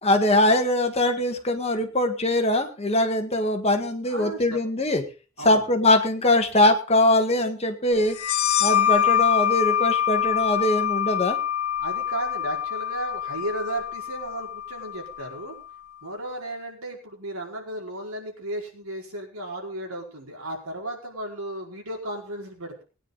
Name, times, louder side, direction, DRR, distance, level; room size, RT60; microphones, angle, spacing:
voice 1, 0.0-5.0 5.5-8.2 8.6-11.4, left 1 dB, 30° left, 6 dB, 1.7 m, -22 dB
voice 2, 4.1-4.6 5.4-5.6 11.8-15.6 16.0-22.8, right 1 dB, 80° right, 0 dB, 4.8 m, -34 dB
sound 1, 8.1-15.4, left 10 dB, 80° left, 1.0 m, -25 dB
20.0 x 10.0 x 4.0 m, 0.35 s
head